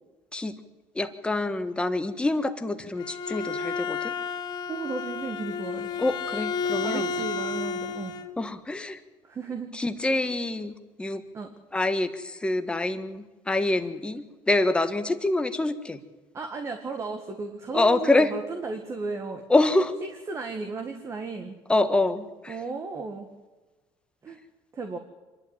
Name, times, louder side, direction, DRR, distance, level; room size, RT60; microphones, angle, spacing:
voice 1, 0.9-4.1 6.0-7.1 8.4-9.0 9.7-10.7 11.0-11.2 11.7-16.0 17.7-18.3 19.5-20.0 21.7-22.6, left 2 dB, 10° left, 7 dB, 1.6 m, -26 dB
Bowed string instrument, 2.8-8.3, left 5 dB, 45° left, 1.3 m, -31 dB
voice 2, 4.7-5.9 6.8-8.1 9.2-9.7 11.3-11.5 16.3-19.4 20.3-21.6 22.5-23.3 24.2-24.4 24.7-25.0, right 4 dB, 30° right, 5 dB, 1.9 m, -34 dB
25.5 x 12.0 x 9.2 m, 1.2 s
cardioid pair, 130°, 10 cm